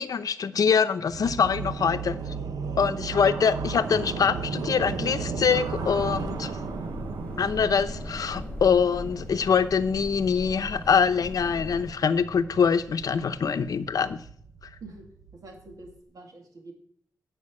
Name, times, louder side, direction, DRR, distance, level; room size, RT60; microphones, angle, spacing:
voice 1, 0.0-2.2 2.8-6.5 7.4-14.2, left 6 dB, 70° left, 11 dB, 0.7 m, -24 dB
sound 1, 1.1-16.0, right 5 dB, 90° right, 0.8 m, -36 dB
sound 2, 5.6-11.9, left 2 dB, 15° left, 1.5 m, -40 dB
voice 2, 15.3-16.7, right 2 dB, 70° right, 2 dB, 2.6 m, -46 dB
11.5 x 5.1 x 8.6 m, 0.63 s
wide cardioid pair, 110°, 6 cm